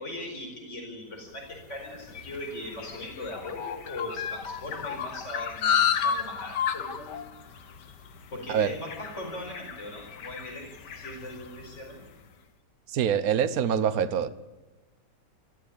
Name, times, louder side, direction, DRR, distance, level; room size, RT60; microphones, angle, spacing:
voice 1, 0.0-7.2 8.3-10.7 11.0-12.0, left 1 dB, 45° left, 2 dB, 5.2 m, -39 dB
sound 1, 1.4-12.0, left 7 dB, 90° left, 1.9 m, -33 dB
voice 2, 12.9-14.3, right 8 dB, 60° right, 12 dB, 1.4 m, -25 dB
23.5 x 14.5 x 8.7 m, 1.2 s
omnidirectional pair, 1.8 m